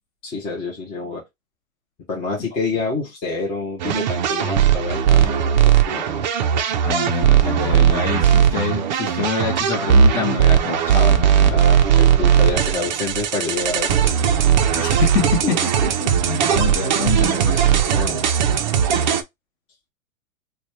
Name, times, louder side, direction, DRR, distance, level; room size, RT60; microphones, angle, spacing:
voice 1, 0.2-1.2 2.1-5.4 5.7-6.0 11.5-14.3 15.4-16.5 17.9-18.2, left 3 dB, 15° left, 0.6 m, -28 dB
sound 1, 3.8-19.2, right 8 dB, 35° right, 0.5 m, -18 dB
voice 2, 6.8-11.5 14.7-15.6 16.3-17.8, left 5 dB, 45° left, 2.4 m, -26 dB
4.1 x 2.2 x 3.1 m
hypercardioid pair, 155°, 40 cm